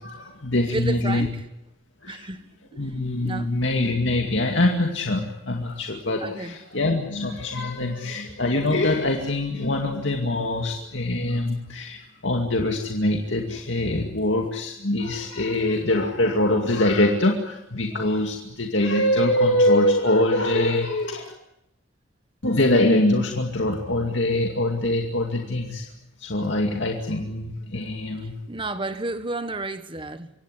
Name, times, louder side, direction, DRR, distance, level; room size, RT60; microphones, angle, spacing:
voice 1, 0.0-1.3 2.0-2.3 2.7-21.3 22.4-25.9 26.2-28.3, left 1 dB, 70° left, 2.3 m, -23 dB
voice 2, 0.7-1.4 2.1-2.4 2.8-2.9 3.2-3.5 6.2-6.6 17.9-18.1 28.2-30.3, right 2 dB, 25° right, 1.4 m, -32 dB
25.5 x 17.0 x 9.8 m
head